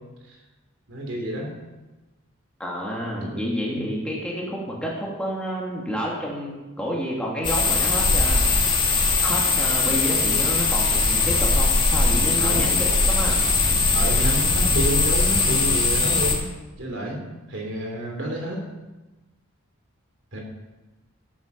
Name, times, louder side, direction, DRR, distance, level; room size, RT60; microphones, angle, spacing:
voice 1, 0.9-1.6 3.2-3.4 12.4-12.8 13.9-16.5 16.8-18.6 20.3-20.4, right 1 dB, 60° right, 1 dB, 3.4 m, -29 dB
voice 2, 2.6-8.6 9.2-13.5, equal, 5° left, -3 dB, 2.6 m, -29 dB
sound 1, 7.4-16.3, left 3 dB, 20° left, 2.7 m, -20 dB
13.0 x 9.5 x 6.9 m, 1.1 s
head